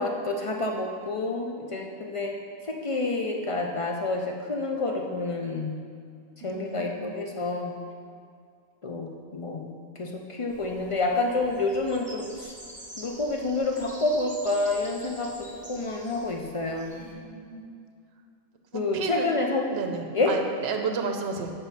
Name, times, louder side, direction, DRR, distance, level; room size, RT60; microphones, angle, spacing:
voice 1, 0.0-2.3 2.7-5.8 6.4-7.8 8.8-12.5 13.0-17.0 18.7-19.8 20.1-20.4, left 2 dB, 60° left, 1 dB, 0.3 m, -28 dB
voice 2, 6.4-7.1 17.0-17.7 18.7-19.3 19.7-21.5, right 5 dB, 65° right, 4 dB, 0.9 m, -33 dB
sound 1, 10.5-17.1, right 1 dB, 5° right, 1.0 m, -46 dB
7.8 x 5.3 x 4.1 m, 2.2 s
omnidirectional pair, 1.3 m